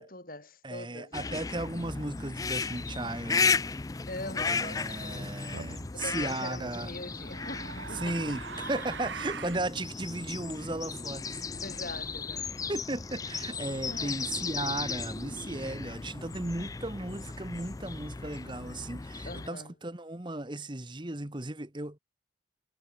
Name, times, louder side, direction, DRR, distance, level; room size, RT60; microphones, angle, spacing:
voice 1, 0.0-1.7 4.1-5.6 5.9-8.2 11.6-12.5 13.9-14.4 19.3-19.7, left 2 dB, 50° left, 6.1 m, -43 dB
voice 2, 0.6-3.6 4.5-6.9 7.9-11.4 12.7-22.0, right 2 dB, 25° right, 1.3 m, -36 dB
sound 1, 1.1-19.5, left 4 dB, 20° left, 0.4 m, -35 dB
sound 2, 5.5-5.9 6.9-9.7, right 5 dB, 80° right, 1.6 m, -41 dB
head